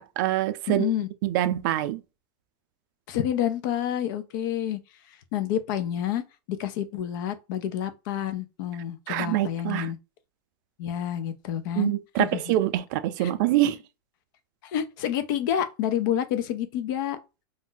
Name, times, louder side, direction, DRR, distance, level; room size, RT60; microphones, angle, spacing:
voice 1, 0.0-0.9 1.2-2.0 9.1-9.9 11.8-13.8, right 14 dB, 55° right, 0.4 m, -25 dB
voice 2, 0.7-1.1 3.1-4.8 5.3-6.2 6.6-10.0 10.8-12.6 13.2-13.3 14.6-17.2, left 10 dB, 55° left, 0.6 m, -29 dB
2.6 x 2.1 x 3.8 m
supercardioid pair, 150°, 12 cm